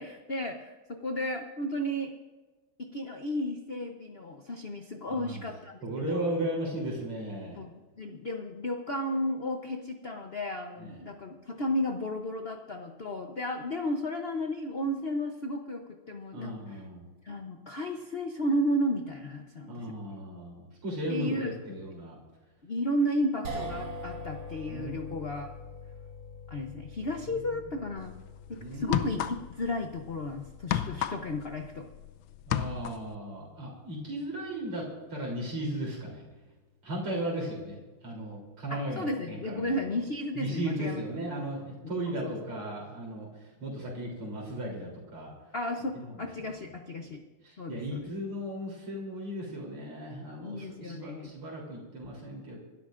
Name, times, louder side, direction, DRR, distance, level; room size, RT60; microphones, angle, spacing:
voice 1, 0.0-2.1 2.8-6.4 7.5-7.7 8.0-16.8 17.2-19.8 21.1-21.8 22.6-25.5 26.5-28.1 28.5-31.9 38.7-41.0 42.1-42.3 45.5-47.2 47.6-48.1 50.4-51.3, left 1 dB, 50° left, 4 dB, 0.7 m, -33 dB
voice 2, 5.1-5.4 5.8-7.6 10.8-11.0 16.3-17.1 19.7-22.2 24.6-25.1 27.2-27.7 28.5-29.2 32.5-36.2 36.8-40.0 40.3-45.3 46.0-46.6 47.4-52.6, right 1 dB, 80° right, -3 dB, 4.3 m, -36 dB
sound 1, 23.4-35.8, left 1 dB, 60° right, 3.3 m, -45 dB
sound 2, 28.0-28.2 28.8-29.7 30.0-32.1 32.4-33.1, left 10 dB, 70° left, 1.3 m, -31 dB
25.5 x 13.0 x 2.6 m, 1.3 s
omnidirectional pair, 2.3 m